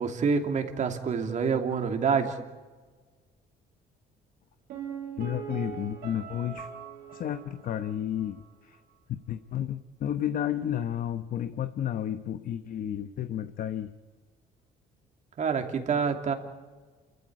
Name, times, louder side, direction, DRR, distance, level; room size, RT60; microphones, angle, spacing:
voice 1, 0.0-2.4 15.4-16.3, right 5 dB, 45° right, 5 dB, 2.8 m, -27 dB
Piano, 4.7-8.5 8.7-8.8, right 8 dB, 75° right, 5.3 m, -41 dB
voice 2, 5.2-6.7 7.1-8.8 9.3-13.9, left 10 dB, 55° left, 10 dB, 1.0 m, -32 dB
28.5 x 15.0 x 8.6 m, 1.4 s
cardioid pair, 110°, 17 cm